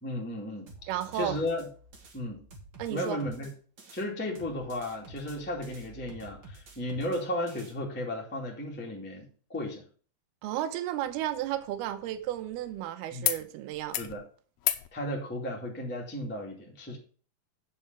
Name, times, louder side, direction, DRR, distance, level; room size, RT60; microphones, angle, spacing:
voice 1, 0.0-0.7 1.1-1.7 2.1-2.4 2.9-3.5 3.9-9.8 13.1-13.3 14.0-14.2 14.9-17.0, left 1 dB, 5° left, 1.1 m, -34 dB
sound 1, 0.7-4.0 4.4-7.7, right 2 dB, 45° right, 1.7 m, -50 dB
voice 2, 0.9-1.4 2.8-3.2 10.4-14.0, right 12 dB, 75° right, 2.8 m, -33 dB
sound 2, 11.0-12.8 13.2-13.4 13.7-14.1 14.6-14.9 16.2-16.3, left 13 dB, 75° left, 2.4 m, -34 dB
8.2 x 6.9 x 5.9 m
omnidirectional pair, 4.9 m